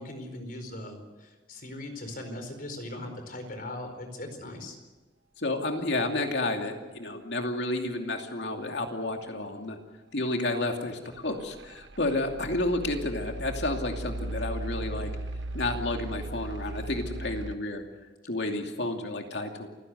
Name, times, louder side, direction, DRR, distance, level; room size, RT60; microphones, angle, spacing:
voice 1, 0.0-4.8, left 1 dB, 50° left, 7 dB, 4.7 m, -39 dB
voice 2, 5.4-9.8 10.1-15.1 15.5-17.8 18.3-19.7, left 2 dB, 70° left, 3 dB, 2.7 m, -31 dB
sound 1, 11.2-17.6, right 1 dB, 90° right, 1.2 m, -37 dB
29.0 x 16.5 x 8.0 m, 1.2 s
head